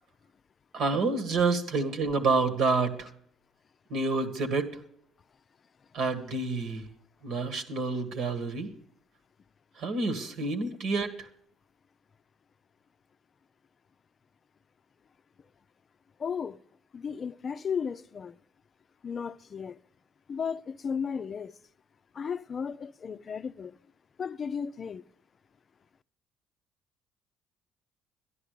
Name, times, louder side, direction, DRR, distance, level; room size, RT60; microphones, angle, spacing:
voice 1, 0.7-3.1 3.9-4.7 5.9-6.9 7.2-8.7 9.8-11.1, right 3 dB, 70° right, 1.8 m, -28 dB
voice 2, 16.2-16.6 16.9-18.4 19.0-19.8 20.3-21.5 22.1-23.7 24.2-25.0, left 6 dB, 45° left, 0.4 m, -34 dB
12.5 x 11.0 x 6.7 m
supercardioid pair, 70°, 0 cm